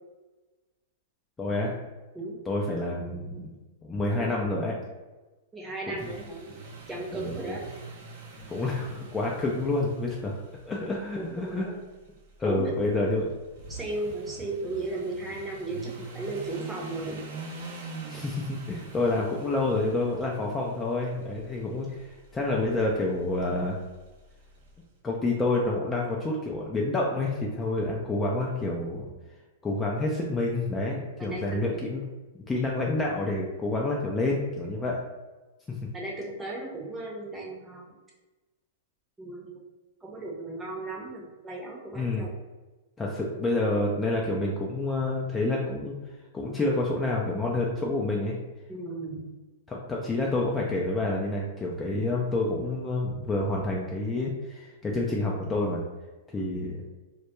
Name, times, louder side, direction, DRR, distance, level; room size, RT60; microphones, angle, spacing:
voice 1, 1.4-1.8 2.5-3.5 3.8-4.8 6.0-6.1 7.2-7.3 8.5-10.4 10.7-11.7 12.4-13.3 18.1-23.8 25.0-29.1 29.6-32.0 32.5-35.0 41.9-42.3 43.0-45.9 46.3-48.4 49.7-55.8 56.3-56.8, left 2 dB, 15° left, -3 dB, 0.3 m, -28 dB
voice 2, 5.5-6.5 6.9-7.6 11.2-11.8 12.4-12.7 13.7-17.2 31.2-31.6 35.9-37.8 39.2-39.6 40.0-42.3 48.7-49.2, right 2 dB, 15° right, -3 dB, 0.7 m, -35 dB
sound 1, 6.0-24.8, right 4 dB, 60° right, 0.5 m, -45 dB
2.2 x 2.0 x 2.9 m, 1.2 s
hypercardioid pair, 115°, 0 cm